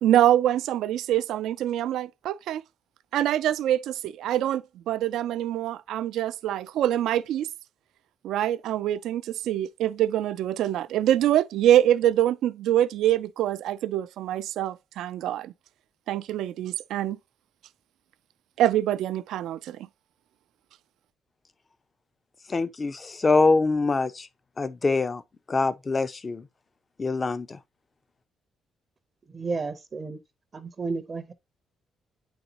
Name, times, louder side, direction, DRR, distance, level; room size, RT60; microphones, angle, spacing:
voice 1, 0.0-2.6 3.1-7.5 8.2-15.5 16.1-17.2 18.6-19.9, right 12 dB, 85° right, 0.3 m, -25 dB
voice 2, 22.5-24.3 24.6-25.2 25.5-26.4 27.0-27.6, left 3 dB, 30° left, 0.5 m, -24 dB
voice 3, 29.3-30.2 30.5-31.3, right 4 dB, 35° right, 0.6 m, -32 dB
8.7 x 4.0 x 2.8 m
cardioid pair, 90°, 0 cm